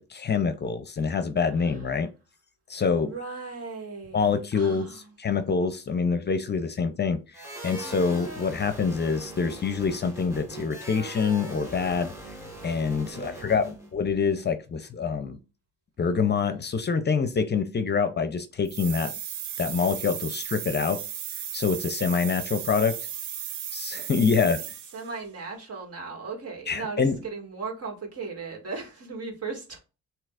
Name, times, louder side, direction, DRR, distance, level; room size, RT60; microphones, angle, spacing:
voice 1, 0.0-2.1 2.7-3.1 4.1-12.1 12.6-15.4 16.0-19.1 19.6-21.0 21.5-22.9 23.7-24.6 26.7-27.2, left 5 dB, 35° left, 0.6 m, -26 dB
voice 2, 3.0-4.3 4.5-5.1 13.1-13.9 24.9-29.8, right 4 dB, 50° right, 2.1 m, -37 dB
sound 1, 7.3-13.9, right 2 dB, 10° right, 1.6 m, -41 dB
sound 2, 18.7-25.1, right 10 dB, 75° right, 0.7 m, -35 dB
7.4 x 2.9 x 2.5 m
cardioid pair, 90°, 30 cm